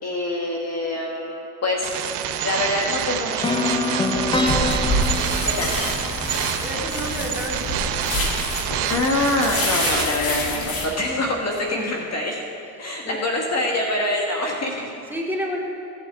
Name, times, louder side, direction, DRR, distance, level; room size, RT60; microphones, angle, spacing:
voice 1, 0.0-2.0 2.4-4.4 5.5-5.9 8.9-12.4 12.8-14.9, left 1 dB, 40° left, 0 dB, 1.3 m, -25 dB
sound 1, 1.8-10.1, right 10 dB, 85° right, 0.7 m, -27 dB
sound 2, 3.4-7.4, left 3 dB, 10° left, 0.6 m, -26 dB
sound 3, 4.1-10.9, left 1 dB, 60° left, 2.0 m, -27 dB
voice 2, 6.6-7.8 11.7-11.9 13.0-13.2 15.1-15.6, equal, 5° right, -3 dB, 2.3 m, -30 dB
16.5 x 8.0 x 3.4 m, 2.7 s
supercardioid pair, 75°, 40 cm